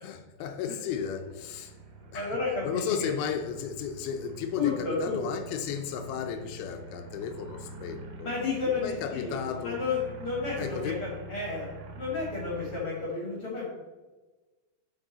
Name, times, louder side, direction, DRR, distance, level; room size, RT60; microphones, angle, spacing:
voice 1, 0.0-1.7 2.1-8.3 8.8-9.8 10.6-11.1, left 7 dB, 80° left, 7 dB, 2.3 m, -34 dB
sound 1, 1.2-12.9, right 2 dB, 75° right, 2.0 m, -45 dB
voice 2, 2.1-3.1 4.6-5.2 8.2-9.4 9.6-13.7, left 4 dB, 50° left, -4 dB, 1.8 m, -32 dB
7.4 x 6.0 x 4.0 m, 1.2 s
omnidirectional pair, 4.8 m